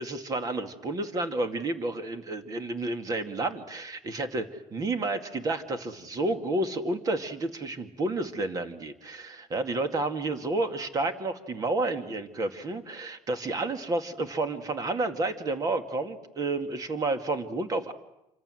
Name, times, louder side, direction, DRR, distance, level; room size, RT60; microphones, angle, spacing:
voice 1, 0.0-17.9, right 2 dB, 30° right, 8 dB, 2.2 m, -30 dB
27.5 x 25.5 x 7.8 m, 0.87 s
cardioid pair, 140°, 12 cm